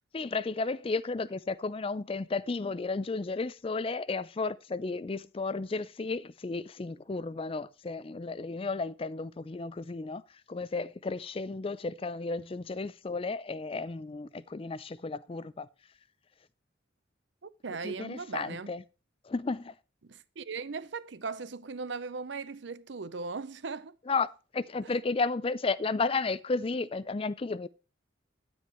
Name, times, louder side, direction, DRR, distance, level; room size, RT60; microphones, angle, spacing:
voice 1, 0.1-10.2 10.5-15.7 17.7-18.8 19.2-19.7 24.1-24.3 24.5-27.7, left 3 dB, 30° left, 0.4 m, -33 dB
voice 2, 17.4-18.7 20.0-24.0 24.8-24.9, right 4 dB, 70° right, 0.7 m, -38 dB
9.7 x 9.5 x 3.0 m
head